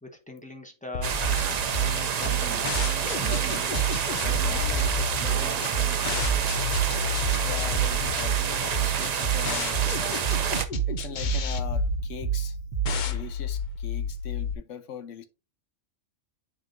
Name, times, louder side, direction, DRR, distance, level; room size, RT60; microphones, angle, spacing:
voice 1, 0.0-1.3 1.7-3.8 4.2-6.3, left 2 dB, 5° left, 0.9 m, -42 dB
sound 1, 0.9-14.5, left 6 dB, 50° left, 0.6 m, -32 dB
sound 2, 1.0-10.7, right 7 dB, 55° right, 0.4 m, -29 dB
sound 3, 1.2-13.2, right 9 dB, 75° right, 1.2 m, -30 dB
voice 2, 6.9-10.2 10.9-12.6 12.9-15.2, left 7 dB, 80° left, 1.1 m, -41 dB
9.5 x 3.9 x 2.5 m
omnidirectional pair, 1.3 m